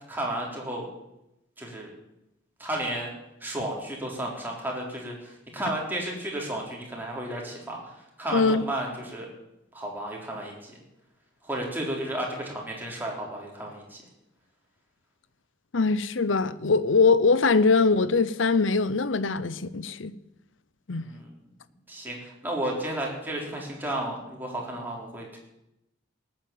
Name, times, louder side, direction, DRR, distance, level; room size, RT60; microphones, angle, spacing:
voice 1, 0.1-0.9 1.6-1.9 2.6-3.1 3.4-9.3 9.7-10.7 11.4-14.0 20.9-21.3 21.9-25.4, right 1 dB, 10° right, 4.1 m, -33 dB
voice 2, 8.3-8.6 15.7-20.1 20.9-21.1, left 4 dB, 70° left, 0.8 m, -22 dB
18.5 x 8.9 x 7.4 m
head